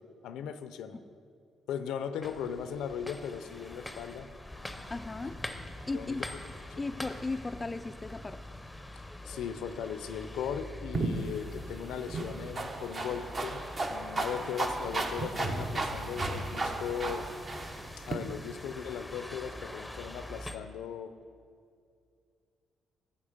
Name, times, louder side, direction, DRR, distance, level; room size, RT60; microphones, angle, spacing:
voice 1, 0.2-1.0 1.7-4.3 5.2-5.3 5.9-6.2 9.2-13.6 13.9-17.3 18.1-21.1, left 8 dB, 85° left, 11 dB, 0.5 m, -38 dB
sound 1, 2.2-20.6, left 1 dB, 5° left, 0.7 m, -44 dB
voice 2, 4.9-5.4 5.9-6.2 6.8-8.4, left 3 dB, 20° left, 10 dB, 0.3 m, -36 dB
sound 2, 10.9-18.2, right 2 dB, 35° right, 0.9 m, -35 dB
11.0 x 7.2 x 5.0 m, 2.3 s
cardioid pair, 90°, 0 cm